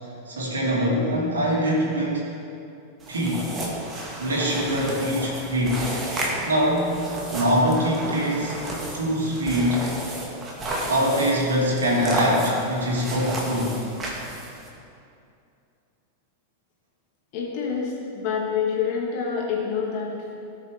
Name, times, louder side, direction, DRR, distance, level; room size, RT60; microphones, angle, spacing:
voice 1, 0.3-2.3 3.1-3.5 4.2-5.9 6.4-8.6 8.9-9.8 10.9-13.8, equal, 70° right, -5 dB, 3.2 m, -23 dB
sound 1, 3.0-14.7, right 1 dB, 20° right, 2.3 m, -32 dB
voice 2, 17.3-20.4, left 6 dB, 45° left, -3 dB, 2.8 m, -27 dB
18.0 x 7.3 x 3.8 m, 2.6 s
figure-of-eight pair, 90°, 0 cm